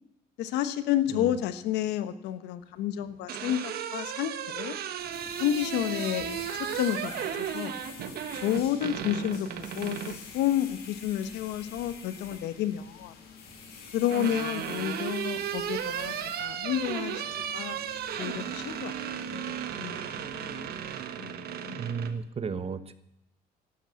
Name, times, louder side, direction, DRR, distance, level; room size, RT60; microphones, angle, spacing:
voice 1, 0.4-4.7 5.4-6.3 6.6-7.8 8.4-13.1 13.9-16.1 16.4-17.2 17.5-17.8 18.2-20.2 21.2-21.8, left 11 dB, 85° left, 12 dB, 1.1 m, -30 dB
sound 1, 3.0-10.2 11.7-12.4 13.6-22.1, right 9 dB, 65° right, 1.3 m, -35 dB
metro under construction, 5.0-21.0, left 6 dB, 70° left, 3.8 m, -47 dB
voice 2, 21.7-22.9, right 6 dB, 35° right, 12 dB, 1.2 m, -34 dB
12.0 x 11.5 x 8.6 m, 0.81 s
cardioid pair, 110°, 17 cm